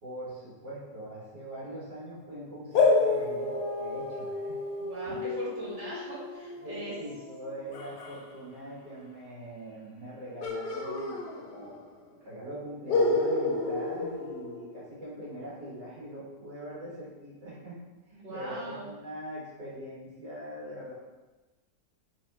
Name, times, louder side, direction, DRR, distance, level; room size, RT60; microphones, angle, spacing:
voice 1, 0.0-4.6 5.0-5.1 6.6-11.8 12.2-17.8 18.1-20.9, right 1 dB, 80° right, -8 dB, 1.9 m, -42 dB
sound 1, 2.7-8.2 10.4-11.9 12.1-12.2 12.9-15.1, left 3 dB, 85° left, 1.2 m, -30 dB
voice 2, 4.8-6.9 18.2-18.9, right 1 dB, 25° right, -8 dB, 1.1 m, -39 dB
3.5 x 3.2 x 2.8 m, 1.2 s
omnidirectional pair, 1.8 m